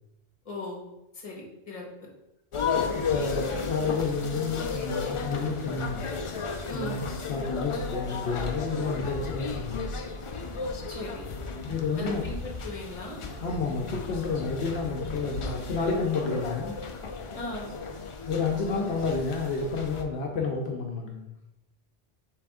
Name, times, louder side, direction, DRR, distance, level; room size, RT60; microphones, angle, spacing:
voice 1, 0.4-0.8 1.1-2.1 6.7-7.0 10.9-11.3 12.0-13.2 17.3-17.7, left 2 dB, 35° left, -2 dB, 1.1 m, -38 dB
sound 1, 2.5-20.0, left 4 dB, 60° left, 0.3 m, -34 dB
voice 2, 2.9-6.0 6.7-9.8 11.7-12.2 13.4-16.7 18.2-21.3, left 4 dB, 75° left, 0 dB, 0.9 m, -30 dB
3.3 x 3.3 x 4.8 m, 0.92 s
omnidirectional pair, 1.1 m